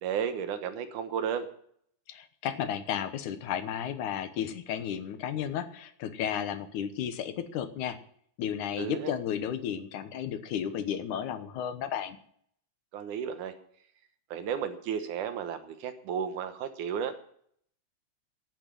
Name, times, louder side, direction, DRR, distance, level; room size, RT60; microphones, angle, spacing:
voice 1, 0.0-1.5 8.8-9.2 12.9-13.5 14.3-17.2, right 8 dB, 80° right, 9 dB, 2.7 m, -33 dB
voice 2, 2.1-8.0 8.4-12.2, left 9 dB, 80° left, 10 dB, 2.5 m, -33 dB
10.5 x 9.0 x 9.1 m, 0.64 s
omnidirectional pair, 3.5 m